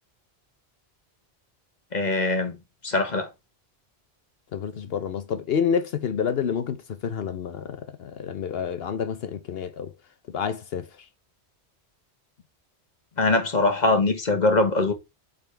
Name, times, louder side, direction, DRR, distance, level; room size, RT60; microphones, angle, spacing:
voice 1, 1.9-2.6 2.8-3.3 13.2-14.9, left 2 dB, 40° left, 1.3 m, -22 dB
voice 2, 4.5-9.9 10.3-10.9, left 7 dB, 65° left, 0.9 m, -28 dB
8.6 x 4.1 x 3.3 m
omnidirectional pair, 1.1 m